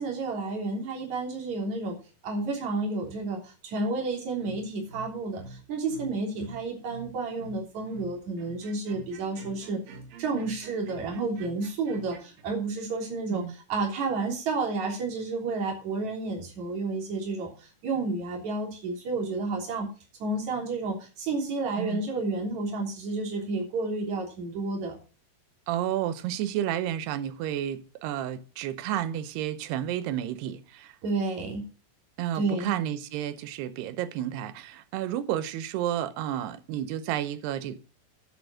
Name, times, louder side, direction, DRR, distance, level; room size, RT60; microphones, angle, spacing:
voice 1, 0.0-2.0 2.2-9.8 10.2-19.9 20.2-24.9 31.0-31.6 32.3-32.8, right 3 dB, 50° right, 4.5 m, -31 dB
sound 1, 4.4-12.4, right 2 dB, 65° right, 3.0 m, -46 dB
voice 2, 25.7-30.9 32.2-37.8, right 11 dB, 85° right, 3.0 m, -31 dB
10.5 x 7.9 x 6.3 m
omnidirectional pair, 4.6 m